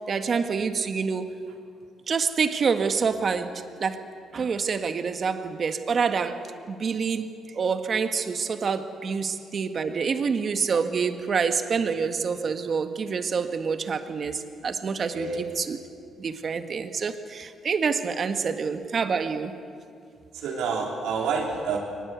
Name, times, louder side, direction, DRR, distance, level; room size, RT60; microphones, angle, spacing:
voice 1, 0.1-1.3 2.1-4.0 4.3-6.4 6.7-15.8 16.2-19.5, right 5 dB, 45° right, 8 dB, 1.6 m, -27 dB
voice 2, 15.1-15.4 20.3-21.8, right 5 dB, 85° right, -1 dB, 4.2 m, -29 dB
23.0 x 20.0 x 8.2 m, 2.4 s
cardioid pair, 90°, 0 cm